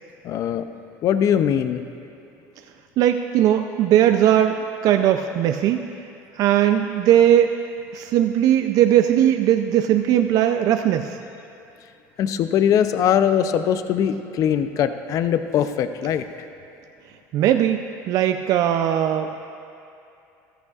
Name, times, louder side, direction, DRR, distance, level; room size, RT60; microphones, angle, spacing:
voice 1, 0.2-0.7 1.0-1.8 12.2-16.2, left 9 dB, 50° left, 10 dB, 0.5 m, -21 dB
voice 2, 3.0-5.8 6.3-7.5 7.9-11.2 17.3-19.5, right 11 dB, 60° right, 7 dB, 0.4 m, -19 dB
14.5 x 14.0 x 2.4 m, 2.7 s
supercardioid pair, 110°, 7 cm